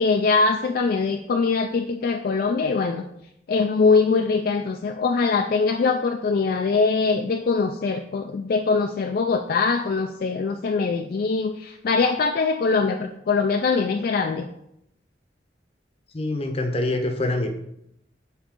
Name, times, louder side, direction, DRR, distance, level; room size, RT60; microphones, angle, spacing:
voice 1, 0.0-3.0 3.5-14.5, left 4 dB, 55° left, 5 dB, 0.3 m, -22 dB
voice 2, 16.1-17.5, left 2 dB, 35° left, 5 dB, 0.7 m, -25 dB
7.2 x 4.1 x 3.6 m, 0.79 s
head